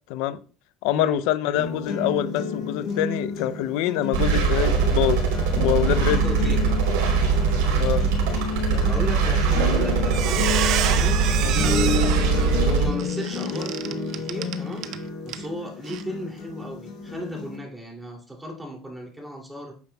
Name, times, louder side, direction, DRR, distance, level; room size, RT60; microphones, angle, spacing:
voice 1, 0.1-0.4 0.8-5.2 5.6-6.2 7.8-8.1 8.7-8.9 11.4-11.6, left 12 dB, 75° left, 0.5 m, -25 dB
sound 1, 1.5-17.5, left 5 dB, 55° left, 2.9 m, -31 dB
sound 2, 4.1-12.8, right 5 dB, 85° right, 2.8 m, -22 dB
voice 2, 6.2-6.8 8.8-10.5 10.8-19.7, equal, 5° right, 2.7 m, -36 dB
Squeak, 9.5-9.7 10.0-15.0 15.3-15.5 15.9-16.0, right 11 dB, 60° right, 0.7 m, -29 dB
9.3 x 7.0 x 2.3 m
supercardioid pair, 115°, 0 cm